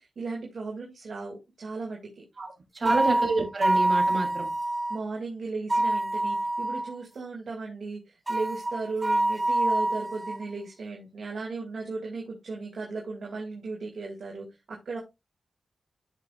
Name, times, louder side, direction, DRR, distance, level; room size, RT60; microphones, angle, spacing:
voice 1, 0.0-2.2 2.8-2.9 4.9-15.0, right 3 dB, 75° right, 2.3 m, -36 dB
voice 2, 2.7-4.5, right 3 dB, 50° right, 3.3 m, -28 dB
sound 1, 2.9-5.0 5.7-7.0 8.3-10.4, right 1 dB, 25° right, 2.0 m, -26 dB
13.5 x 5.9 x 2.4 m
cardioid pair, 70°, 0 cm